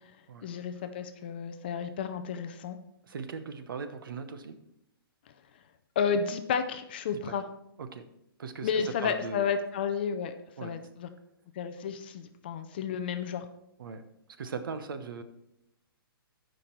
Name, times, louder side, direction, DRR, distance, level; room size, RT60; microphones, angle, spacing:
voice 1, 0.4-2.8 6.0-7.4 8.6-10.3 10.6-11.1 11.6-13.5, left 6 dB, 25° left, 8 dB, 0.4 m, -31 dB
voice 2, 3.0-4.6 7.1-7.4 7.8-8.0 8.4-9.5 10.6-10.7 13.8-14.0 14.4-15.2, right 5 dB, 60° right, 9 dB, 1.0 m, -39 dB
11.5 x 5.2 x 4.4 m, 0.81 s
hypercardioid pair, 175°, 13 cm